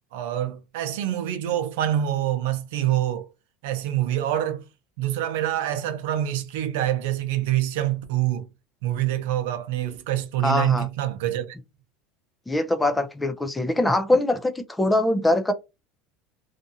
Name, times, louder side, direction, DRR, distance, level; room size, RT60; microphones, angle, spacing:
voice 1, 0.1-3.2 3.6-4.6 5.0-8.5 8.8-11.5, right 12 dB, 85° right, 0.6 m, -26 dB
voice 2, 10.4-10.9 12.5-15.5, left 1 dB, 10° left, 0.4 m, -22 dB
2.6 x 2.4 x 2.6 m
supercardioid pair, 135°, 0 cm